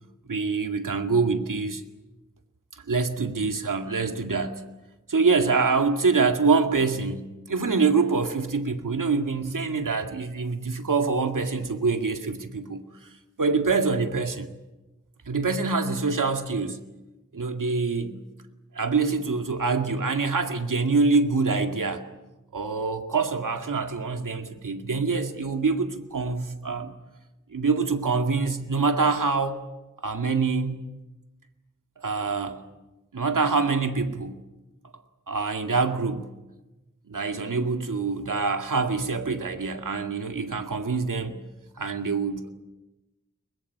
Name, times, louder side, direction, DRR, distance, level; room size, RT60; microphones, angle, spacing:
voice 1, 0.3-1.8 2.9-4.6 5.1-12.8 13.4-14.5 15.3-16.8 17.3-18.2 18.7-22.0 22.5-26.9 27.5-29.6 30.0-30.8 32.0-32.6 33.1-34.4 35.3-36.3 37.1-41.4 41.8-42.5, right 4 dB, 80° right, 5 dB, 2.2 m, -25 dB
23.0 x 21.0 x 8.6 m, 1.1 s
wide cardioid pair, 70°, 31 cm